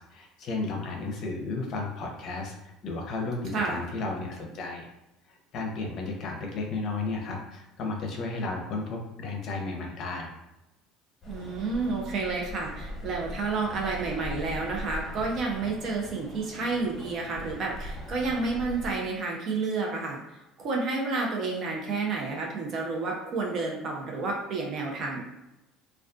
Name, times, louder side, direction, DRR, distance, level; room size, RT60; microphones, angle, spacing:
voice 1, 0.1-4.9 5.5-10.3, left 3 dB, 55° left, 2 dB, 0.6 m, -33 dB
voice 2, 3.5-3.8 11.3-20.2 20.6-25.2, right 3 dB, 50° right, -1 dB, 0.5 m, -30 dB
sound 1, 11.2-18.9, equal, 25° left, 1.1 m, -40 dB
2.4 x 2.3 x 2.3 m, 0.95 s
supercardioid pair, 100°, 0 cm